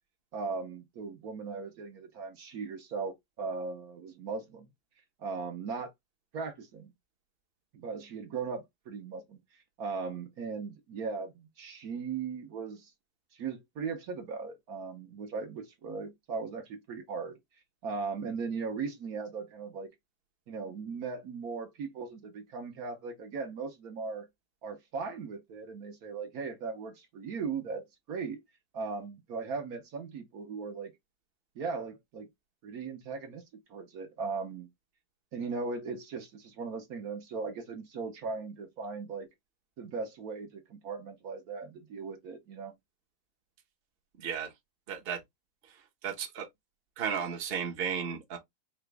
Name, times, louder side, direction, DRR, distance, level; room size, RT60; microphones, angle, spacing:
voice 1, 0.3-4.7 5.2-5.9 6.3-6.9 7.7-9.4 9.8-12.9 13.3-17.4 17.8-19.9 20.5-24.3 24.6-28.4 28.7-30.9 31.5-32.3 32.6-33.4 33.7-34.7 35.3-39.3 39.8-42.7, right 4 dB, 65° right, 1.4 m, -38 dB
voice 2, 44.2-44.5 44.9-45.2 45.6-46.5 47.0-48.4, right 7 dB, 45° right, 1.0 m, -34 dB
5.0 x 2.3 x 3.3 m
omnidirectional pair, 1.7 m